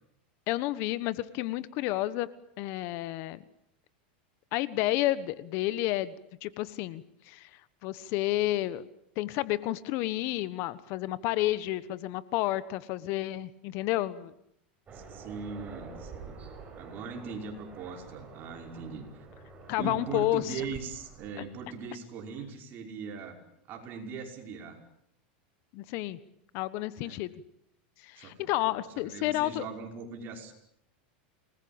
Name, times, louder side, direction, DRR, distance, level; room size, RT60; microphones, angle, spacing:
voice 1, 0.5-2.3 2.6-3.4 4.5-6.1 6.4-7.5 7.8-8.8 9.2-14.3 19.7-20.6 25.7-26.2 26.5-27.3 28.0-29.7, left 16 dB, 50° left, 16 dB, 1.3 m, -30 dB
Aircraft, 14.9-21.9, right 4 dB, 25° right, 6.3 m, -48 dB
voice 2, 14.9-16.4 16.8-19.2 19.8-23.4 23.7-24.8 27.0-27.2 28.2-30.5, right 5 dB, 40° right, 3 dB, 5.6 m, -40 dB
28.5 x 20.5 x 8.9 m, 0.76 s
supercardioid pair, 140°, 6 cm